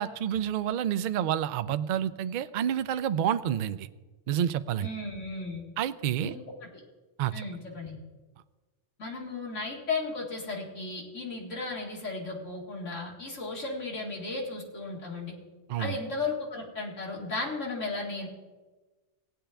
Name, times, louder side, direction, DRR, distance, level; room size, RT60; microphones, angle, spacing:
voice 1, 0.0-3.9 4.3-4.9 5.8-6.3 7.2-7.3 15.7-16.0, right 10 dB, 60° right, 13 dB, 0.5 m, -29 dB
voice 2, 4.8-5.6 6.2-6.7 7.3-8.0 9.0-15.4 15.8-18.3, left 3 dB, 85° left, -1 dB, 2.4 m, -35 dB
17.0 x 10.0 x 3.4 m, 1.3 s
omnidirectional pair, 1.2 m